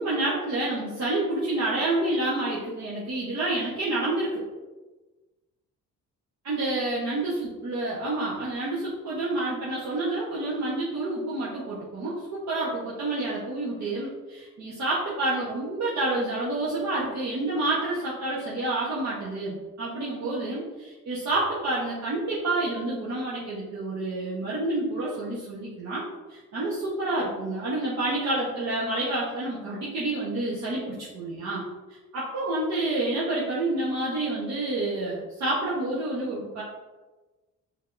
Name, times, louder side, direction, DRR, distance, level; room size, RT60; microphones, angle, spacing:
voice 1, 0.0-4.4 6.4-26.0 26.3-31.6 32.1-36.6, right 2 dB, 65° right, -8 dB, 1.1 m, -28 dB
5.4 x 3.5 x 2.5 m, 1.2 s
cardioid pair, 90°, 30 cm